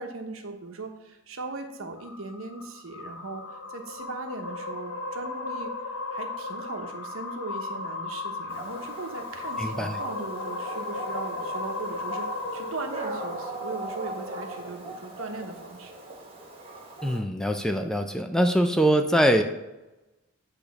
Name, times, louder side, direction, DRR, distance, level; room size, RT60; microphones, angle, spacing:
voice 1, 0.0-5.7 6.1-12.3 12.5-15.9, right 3 dB, 80° right, 5 dB, 1.0 m, -38 dB
sound 1, 2.0-14.5, left 2 dB, 75° left, 0.7 m, -36 dB
Dog, 8.5-17.2, right 2 dB, 25° right, 1.5 m, -39 dB
voice 2, 9.6-10.0 17.0-19.4, equal, 5° left, 6 dB, 0.4 m, -23 dB
8.5 x 3.3 x 5.9 m, 1.0 s
head